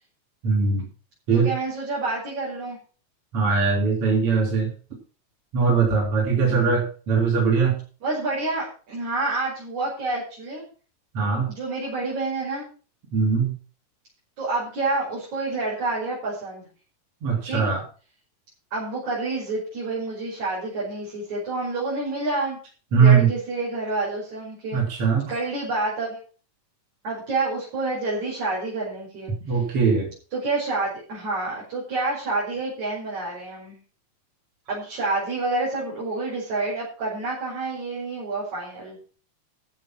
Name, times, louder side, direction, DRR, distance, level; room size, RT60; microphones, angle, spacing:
voice 1, 0.4-0.9 1.3-1.5 3.3-4.7 5.5-7.8 11.1-11.5 13.1-13.5 17.2-17.8 22.9-23.3 24.7-25.3 29.5-30.1, right 5 dB, 50° right, -1 dB, 4.3 m, -20 dB
voice 2, 1.3-2.8 6.4-6.7 8.0-10.6 11.5-12.7 14.4-16.7 17.4-17.6 18.7-22.6 23.0-26.2 27.0-29.6 30.3-33.8 34.7-39.0, right 3 dB, 80° right, -6 dB, 6.8 m, -28 dB
14.0 x 7.3 x 6.0 m, 0.39 s
omnidirectional pair, 3.3 m